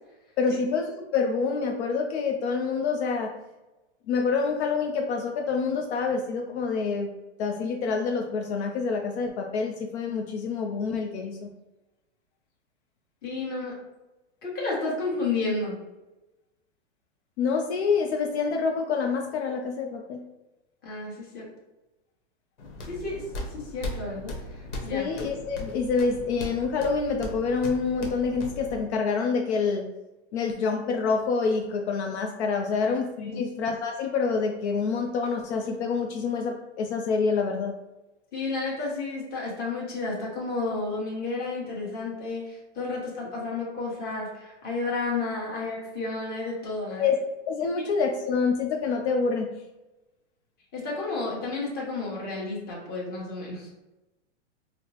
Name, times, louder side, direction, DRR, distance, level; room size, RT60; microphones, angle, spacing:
voice 1, 0.4-3.3 4.1-7.1 7.4-11.5 17.4-20.2 24.9-29.9 30.3-37.7 46.9-47.2 47.5-49.5, left 5 dB, 70° left, 2 dB, 0.5 m, -27 dB
voice 2, 13.2-13.8 14.4-15.8 20.8-21.5 22.8-25.1 33.2-33.4 38.3-47.1 50.7-53.7, left 3 dB, 25° left, -4 dB, 1.2 m, -32 dB
sound 1, 22.6-28.8, left 1 dB, 85° left, 1.0 m, -38 dB
4.1 x 2.0 x 2.9 m, 1.0 s
hypercardioid pair, 145°, 35 cm